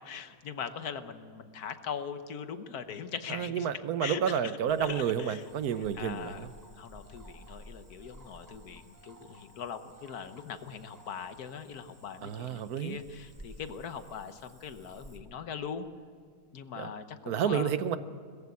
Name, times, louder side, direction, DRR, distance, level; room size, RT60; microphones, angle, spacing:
voice 1, 0.0-3.7 4.0-4.5 4.8-5.4 6.0-6.4 6.8-15.9 16.5-17.7, left 7 dB, 80° left, 10 dB, 1.6 m, -41 dB
voice 2, 3.3-6.5 12.2-13.0 16.8-16.9 17.3-18.0, right 8 dB, 80° right, 12 dB, 1.4 m, -30 dB
Cricket / Frog, 4.7-15.2, right 1 dB, 15° right, 1.8 m, -54 dB
21.5 x 14.5 x 8.4 m, 2.1 s
omnidirectional pair, 1.6 m